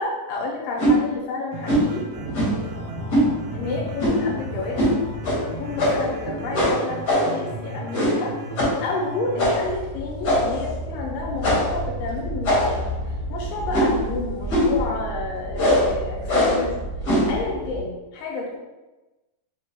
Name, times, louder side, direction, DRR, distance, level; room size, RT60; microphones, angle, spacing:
voice 1, 0.0-2.1 3.5-4.9 5.6-8.4 8.8-12.9 13.3-16.8 17.3-18.6, left 3 dB, 85° left, -2 dB, 2.4 m, -30 dB
sound 1, 0.8-1.0 1.7-1.9 2.3-2.6 3.1-3.3 4.0-4.3 4.8-4.9 5.2-5.4 5.8-6.1 6.5-7.4 7.9-8.3 8.6-8.8 9.4-9.7 10.2-10.6 11.4-11.8 12.4-12.9 13.7-14.0 14.5-14.8 15.6-15.9 16.3-16.6 17.0-17.4, equal, 60° left, 1.1 m, -21 dB
sound 2, 1.5-9.5, right 2 dB, 90° right, 2.3 m, -35 dB
sound 3, 2.1-7.2 9.3-17.8, right 1 dB, 65° right, 0.9 m, -33 dB
5.7 x 2.2 x 2.8 m, 1.1 s
omnidirectional pair, 3.9 m